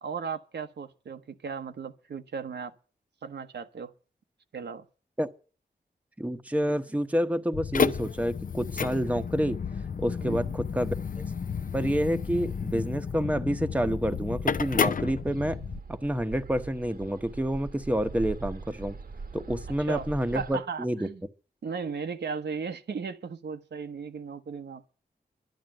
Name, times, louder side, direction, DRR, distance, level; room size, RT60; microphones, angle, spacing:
voice 1, 0.0-2.7 3.2-3.9 4.5-4.9 10.2-10.4 19.9-20.1 20.3-21.2 21.6-24.9, right 5 dB, 85° right, 1.0 m, -36 dB
voice 2, 6.2-9.6 10.0-11.2 11.7-15.6 15.9-19.0 19.3-21.1, equal, 10° right, 0.9 m, -28 dB
sound 1, 7.5-15.8, left 6 dB, 50° left, 0.6 m, -31 dB
Bird, 13.4-20.6, right 4 dB, 60° right, 1.1 m, -42 dB
11.5 x 9.2 x 8.9 m
wide cardioid pair, 105°, 17 cm